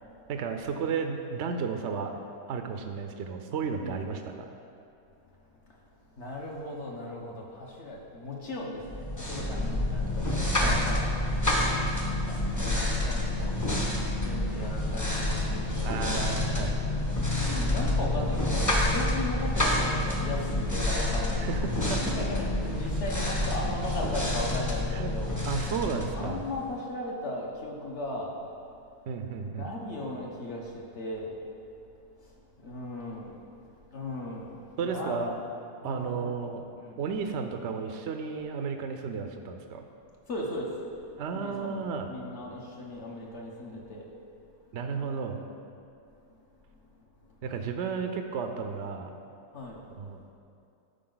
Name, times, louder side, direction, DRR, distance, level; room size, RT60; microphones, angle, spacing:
voice 1, 0.3-2.1 2.5-4.5 10.6-10.9 15.8-16.8 21.4-22.0 24.9-25.1 25.4-26.4 29.1-29.7 34.8-35.4 35.8-36.6 37.0-39.8 41.2-42.1 44.7-45.4 47.4-49.2 50.0-50.2, right 5 dB, 65° right, 6 dB, 0.7 m, -33 dB
voice 2, 6.1-11.1 12.0-13.6 14.2-16.2 17.4-21.5 22.0-25.4 25.8-28.4 29.4-31.4 32.2-32.3 32.6-33.4 33.9-35.3 35.8-36.5 36.8-37.0 40.3-40.7 41.3-44.1 49.5-49.8, left 1 dB, 50° left, -2 dB, 1.2 m, -37 dB
sound 1, 8.9-26.7, left 1 dB, 15° left, 0.7 m, -28 dB
12.0 x 5.0 x 3.9 m, 2.5 s
omnidirectional pair, 1.6 m